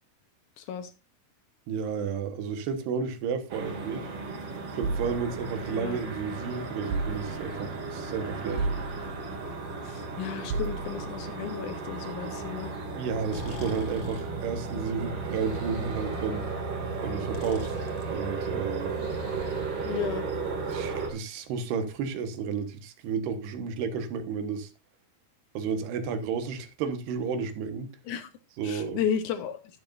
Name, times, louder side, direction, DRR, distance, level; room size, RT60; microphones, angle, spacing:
voice 1, 0.6-0.9 5.7-6.0 9.9-12.7 19.9-20.3 28.1-28.3 28.6-29.6, left 8 dB, 75° left, 1.8 m, -33 dB
voice 2, 1.7-4.1 4.7-8.7 13.0-16.5 17.0-17.7 18.1-19.0 20.7-24.7 25.5-27.9 28.6-29.0, right 6 dB, 80° right, 3.4 m, -32 dB
sound 1, 3.5-21.1, right 4 dB, 40° right, 3.0 m, -35 dB
sound 2, 4.8-6.2 6.9-7.7 8.6-9.5 10.5-11.3, right 3 dB, 60° right, 2.1 m, -34 dB
Breathing, 13.2-20.4, left 3 dB, 45° left, 2.2 m, -45 dB
12.0 x 10.5 x 2.6 m
omnidirectional pair, 4.7 m